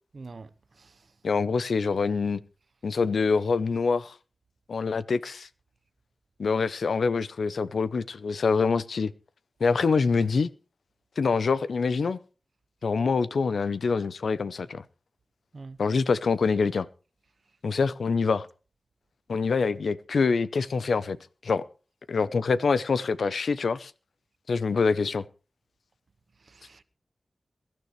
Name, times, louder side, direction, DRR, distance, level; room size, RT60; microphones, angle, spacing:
voice 1, 0.1-1.1 15.5-15.8 26.4-26.8, right 3 dB, 60° right, 0.9 m, -46 dB
voice 2, 1.2-2.4 2.8-4.1 4.7-5.5 6.4-9.1 9.6-10.5 11.2-12.2 12.8-14.8 15.8-16.9 17.6-18.5 19.3-21.2 21.4-21.6 22.1-23.9 24.5-25.2, left 4 dB, 85° left, 0.6 m, -25 dB
22.5 x 12.0 x 3.2 m
wide cardioid pair, 100°, 0 cm